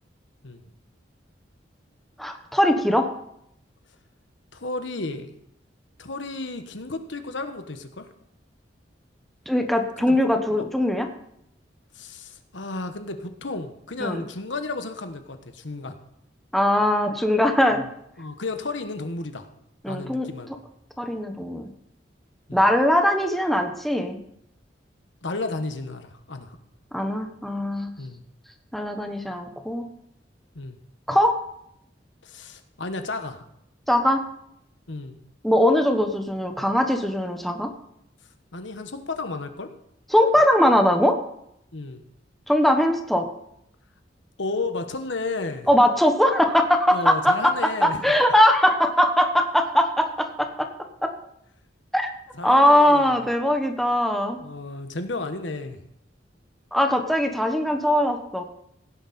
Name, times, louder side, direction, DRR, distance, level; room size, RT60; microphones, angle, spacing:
voice 1, 2.2-3.1 9.5-11.1 14.0-14.2 16.5-17.8 19.8-20.3 21.0-21.7 22.5-24.2 26.9-27.9 28.7-29.8 31.1-31.4 33.9-34.2 35.4-37.7 40.1-41.2 42.5-43.3 45.7-50.7 51.0-51.1 51.9-52.1 52.4-54.4 56.7-58.4, left 1 dB, ahead, 4 dB, 1.1 m, -21 dB
voice 2, 4.5-5.4 6.0-8.1 10.0-10.2 10.6-10.7 11.9-16.0 17.7-17.8 18.2-19.5 19.9-20.5 22.5-22.6 25.2-26.6 28.0-28.2 30.5-30.8 32.2-33.5 34.9-35.2 38.5-39.7 41.7-42.0 44.4-45.7 46.9-48.1 52.3-53.1 54.4-55.8, left 3 dB, 85° left, 7 dB, 1.3 m, -33 dB
16.0 x 10.5 x 4.3 m, 0.74 s
head